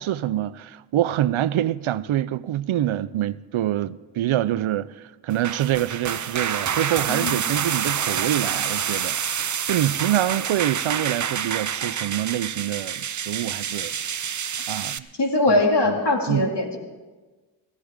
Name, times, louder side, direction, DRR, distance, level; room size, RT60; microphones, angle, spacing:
voice 1, 0.0-4.9 5.2-9.2 9.4-13.9 14.7-15.1 15.5-15.6 16.3-16.5, right 12 dB, 85° right, 0.5 m, -25 dB
sound 1, 5.3-15.0, right 8 dB, 40° right, 0.5 m, -27 dB
voice 2, 15.2-16.8, left 2 dB, 60° left, 2.3 m, -21 dB
17.0 x 15.5 x 3.7 m
wide cardioid pair, 80°, 48 cm